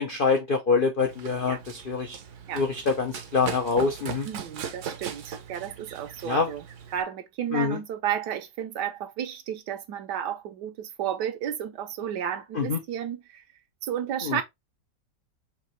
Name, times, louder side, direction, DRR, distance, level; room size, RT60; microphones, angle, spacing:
voice 1, 0.0-2.2 2.5-4.3 6.2-6.5 7.5-7.8 12.6-12.8 14.2-14.4, left 4 dB, 65° left, 0.5 m, -25 dB
Run, 1.0-7.0, right 8 dB, 60° right, 0.8 m, -39 dB
voice 2, 4.2-6.6 6.9-13.4 13.8-14.4, right 9 dB, 75° right, 1.3 m, -32 dB
4.7 x 2.8 x 3.1 m
omnidirectional pair, 1.8 m